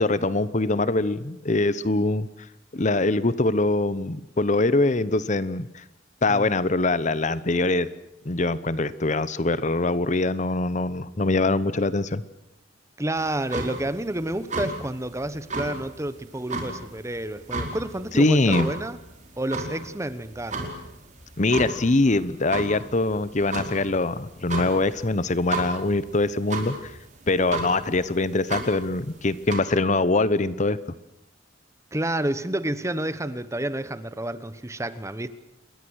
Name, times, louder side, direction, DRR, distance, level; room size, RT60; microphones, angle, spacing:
voice 1, 0.0-2.3 2.7-5.8 6.2-7.9 8.2-12.2 18.1-18.7 21.4-26.9 27.3-30.8, left 2 dB, 40° left, 0.9 m, -23 dB
voice 2, 13.0-19.0 19.4-20.7 31.9-35.3, right 1 dB, 15° right, 1.2 m, -29 dB
sound 1, 13.2-29.6, right 2 dB, 40° right, 4.9 m, -34 dB
28.5 x 21.5 x 6.4 m
head